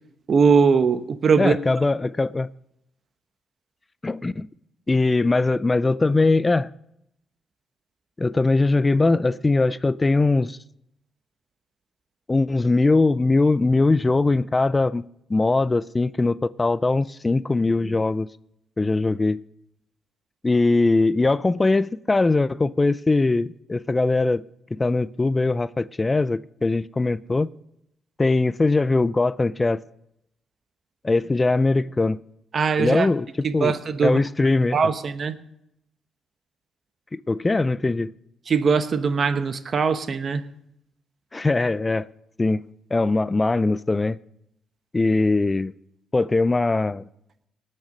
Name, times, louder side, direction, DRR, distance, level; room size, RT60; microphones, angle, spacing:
voice 1, 0.3-1.6 32.5-33.1 33.4-34.2 34.7-35.3 38.5-40.4, right 5 dB, 55° right, 0.9 m, -21 dB
voice 2, 1.4-2.5 4.0-4.5 4.9-6.7 8.2-10.6 12.3-15.0 15.3-18.3 18.8-19.4 20.4-24.4 24.7-27.5 28.2-29.8 31.0-32.2 32.8-33.3 33.5-34.8 37.1-38.1 41.3-42.1 42.4-42.6 42.9-44.2 44.9-45.7 46.1-47.1, left 3 dB, 25° left, 0.4 m, -21 dB
18.5 x 6.6 x 5.2 m
supercardioid pair, 60°, 0 cm